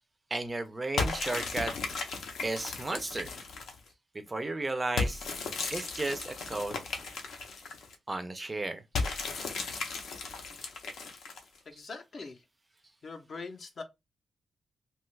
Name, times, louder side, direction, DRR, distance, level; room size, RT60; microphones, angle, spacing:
voice 1, 0.3-1.7 2.4-3.3 4.3-5.2 5.7-6.7 8.1-8.8, right 2 dB, 20° right, 0.4 m, -33 dB
sound 1, 1.0-3.9 5.0-8.0 8.9-11.6, left 4 dB, 80° left, 0.7 m, -35 dB
voice 2, 11.7-12.4 13.0-13.8, left 4 dB, 45° left, 0.5 m, -42 dB
2.8 x 2.3 x 3.1 m
wide cardioid pair, 160°, 0 cm